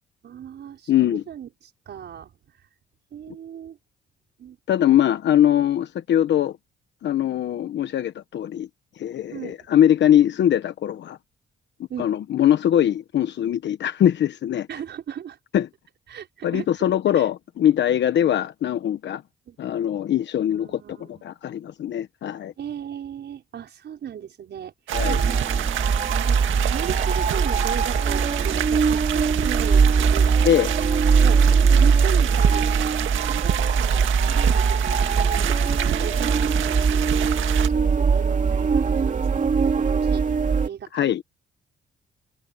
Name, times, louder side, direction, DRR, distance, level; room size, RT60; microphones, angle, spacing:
voice 1, 0.2-2.3 3.1-3.8 4.4-4.9 9.3-9.6 11.9-12.1 14.7-15.4 16.1-16.8 17.1-17.3 19.5-19.6 20.5-21.2 22.6-30.3 31.0-32.7 33.0-40.3 40.6-41.1, right 9 dB, 60° right, 5.5 m, -37 dB
voice 2, 0.9-1.2 4.7-6.6 7.0-8.7 9.0-11.2 12.0-14.7 15.5-15.7 16.4-19.2 19.6-22.5 24.9-25.2 30.4-30.7 40.9-41.2, left 11 dB, 65° left, 1.1 m, -21 dB
sound 1, 24.9-40.7, right 5 dB, 40° right, 2.8 m, -21 dB
sound 2, 24.9-37.7, right 12 dB, 80° right, 1.8 m, -29 dB
cardioid pair, 90°, 20 cm